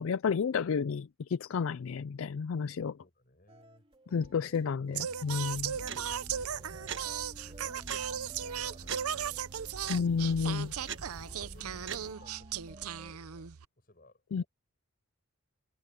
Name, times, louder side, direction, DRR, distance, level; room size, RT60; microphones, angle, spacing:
voice 1, 0.0-3.0 4.1-5.7 9.9-10.7 14.3-14.4, left 6 dB, 65° left, 0.4 m, -31 dB
voice 2, 3.0-3.9 5.3-7.0 7.4-9.4 9.6-10.7 11.3-14.5, left 1 dB, 40° left, 7.4 m, -61 dB
sound 1, 3.5-13.1, right 1 dB, 25° right, 2.8 m, -55 dB
Singing, 4.9-13.7, right 8 dB, 85° right, 0.7 m, -37 dB
sound 2, 5.5-12.1, right 5 dB, 55° right, 1.7 m, -45 dB
head